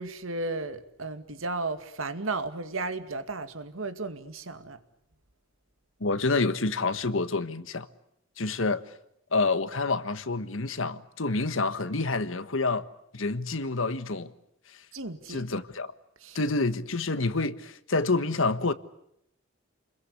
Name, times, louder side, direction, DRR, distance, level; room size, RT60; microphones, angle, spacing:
voice 1, 0.0-4.8 14.9-15.4 16.2-16.4, right 3 dB, 85° right, 2.2 m, -34 dB
voice 2, 6.0-7.9 8.4-8.8 9.3-12.9 13.1-14.3 14.7-14.8 15.3-15.9 16.3-18.7, left 3 dB, 75° left, 1.4 m, -28 dB
29.0 x 22.0 x 8.4 m
head